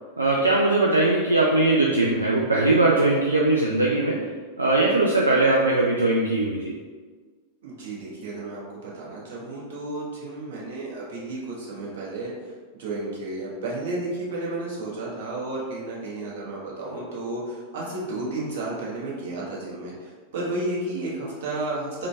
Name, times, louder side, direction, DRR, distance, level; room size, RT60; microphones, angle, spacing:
voice 1, 0.2-4.3 4.6-6.8, right 2 dB, 80° right, -3 dB, 0.3 m, -20 dB
voice 2, 7.6-12.3 12.7-22.1, right 2 dB, 60° right, -5 dB, 1.0 m, -32 dB
3.9 x 2.2 x 3.3 m, 1.5 s
figure-of-eight pair, 90°, 0 cm